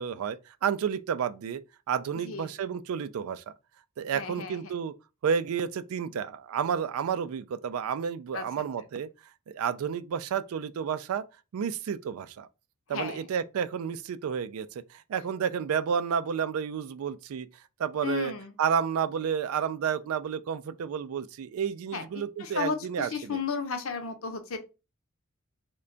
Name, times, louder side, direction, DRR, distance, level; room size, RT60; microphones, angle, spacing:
voice 1, 0.0-1.6 1.9-3.5 4.0-4.9 5.2-9.1 9.5-11.2 11.5-12.5 12.9-17.5 17.8-18.3 18.6-23.4, right 7 dB, 85° right, 0.3 m, -31 dB
voice 2, 4.1-4.7 8.3-8.5 12.9-13.2 18.0-18.6 21.9-22.1 22.4-24.6, left 5 dB, 70° left, 0.7 m, -33 dB
3.3 x 2.2 x 3.8 m
head